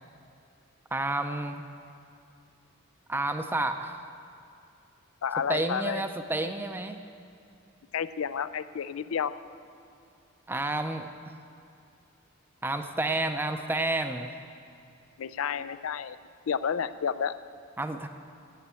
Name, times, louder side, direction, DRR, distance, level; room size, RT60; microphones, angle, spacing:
voice 1, 0.9-1.6 3.1-4.0 5.5-7.0 10.5-11.3 12.6-14.3 17.8-18.1, right 2 dB, 10° right, 6 dB, 0.5 m, -30 dB
voice 2, 5.2-6.0 7.9-9.3 15.2-16.2 16.5-17.4, left 7 dB, 85° left, 14 dB, 0.4 m, -30 dB
11.5 x 8.6 x 8.2 m, 2.6 s
head